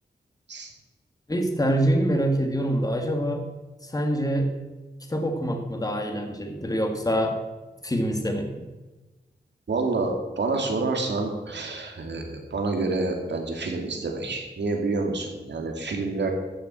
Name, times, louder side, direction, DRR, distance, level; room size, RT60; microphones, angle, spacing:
voice 1, 1.3-3.5 3.8-4.5 5.1-7.4 7.8-8.7, equal, 20° left, 4 dB, 2.0 m, -25 dB
voice 2, 9.7-16.3, right 3 dB, 85° right, 3 dB, 2.5 m, -28 dB
13.5 x 7.3 x 7.5 m, 1.2 s
wide cardioid pair, 95°, 18 cm